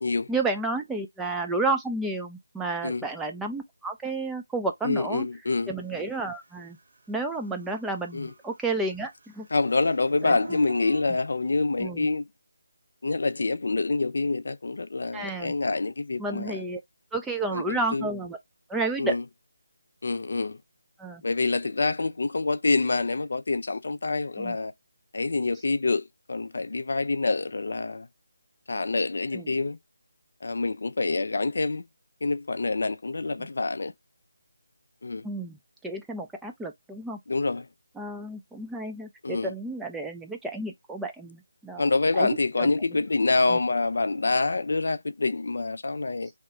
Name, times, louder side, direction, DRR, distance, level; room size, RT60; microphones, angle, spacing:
voice 1, 0.3-5.3 5.7-6.8 7.1-9.5 10.2-10.3 11.8-12.1 15.1-15.5 16.2-16.8 17.1-18.4 18.7-19.1 21.0-21.2 24.4-24.6 29.3-29.5 35.2-37.2 38.0-41.8 42.1-42.3 42.6-42.7 43.5-43.6, right 2 dB, 5° right, 0.4 m, -31 dB
voice 2, 4.8-5.7 8.1-8.3 9.5-12.3 13.0-16.6 17.5-18.1 19.0-19.2 20.0-20.6 21.2-24.7 25.1-28.1 28.7-29.8 30.4-31.9 32.2-33.9 35.0-35.3 37.3-37.7 39.2-39.5 41.8-46.3, left 3 dB, 65° left, 0.4 m, -26 dB
Dog / Siren, 6.7-6.8 7.2-8.7 8.9-11.0, right 3 dB, 60° right, 0.5 m, -42 dB
2.8 x 2.2 x 3.1 m
figure-of-eight pair, 160°, 0 cm